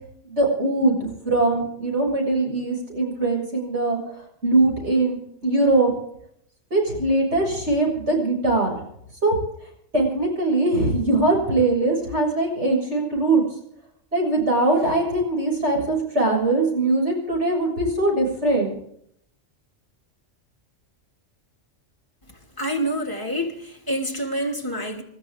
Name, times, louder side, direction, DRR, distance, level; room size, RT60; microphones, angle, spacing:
voice 1, 0.2-4.0 4.4-5.9 6.7-8.7 9.2-9.3 9.9-13.4 14.1-18.8, right 2 dB, 60° right, 7.3 m, -21 dB
voice 2, 22.6-25.0, equal, 15° left, 2.8 m, -27 dB
28.5 x 13.5 x 3.7 m
omnidirectional pair, 1.3 m